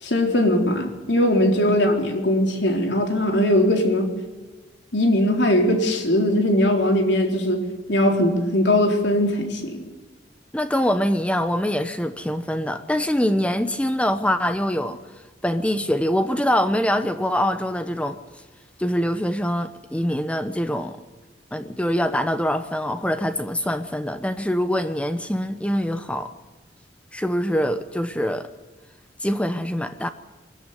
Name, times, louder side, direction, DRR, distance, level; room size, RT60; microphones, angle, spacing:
voice 1, 0.0-4.1 4.9-7.6 7.9-9.8, left 1 dB, 70° left, 4.0 m, -20 dB
voice 2, 10.5-15.0 15.4-18.2 18.8-21.0 21.5-26.3 27.1-28.5 29.2-30.1, equal, 5° left, 0.8 m, -24 dB
23.5 x 14.5 x 9.8 m
head